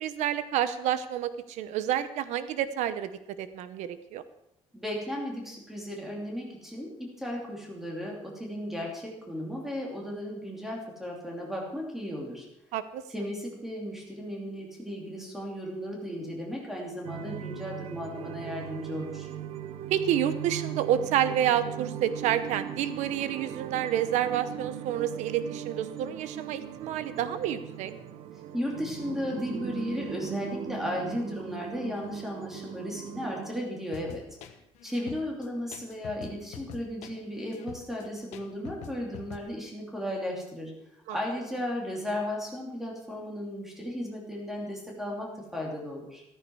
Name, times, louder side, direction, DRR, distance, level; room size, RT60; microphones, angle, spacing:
voice 1, 0.0-3.1 3.4-4.2 12.7-13.0 19.9-27.9 41.1-41.2, right 10 dB, 90° right, 12 dB, 0.9 m, -29 dB
voice 2, 4.7-12.5 13.1-19.3 28.5-34.2 34.8-40.7 41.1-46.2, left 1 dB, 5° right, -2 dB, 3.0 m, -35 dB
sound 1, 17.0-33.6, right 10 dB, 55° right, 0.8 m, -39 dB
sound 2, 33.9-39.4, left 9 dB, 75° left, 1.3 m, -45 dB
14.0 x 13.5 x 4.7 m, 0.83 s
cardioid pair, 175°, 12 cm